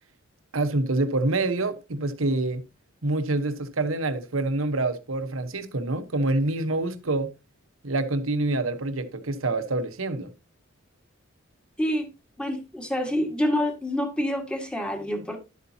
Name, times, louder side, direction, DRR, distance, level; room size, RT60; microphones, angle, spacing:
voice 1, 0.5-2.6 3.0-7.3 7.8-10.3, right 2 dB, 80° right, 1.2 m, -26 dB
voice 2, 12.4-15.4, left 1 dB, 5° left, 1.9 m, -27 dB
12.0 x 8.3 x 2.9 m
head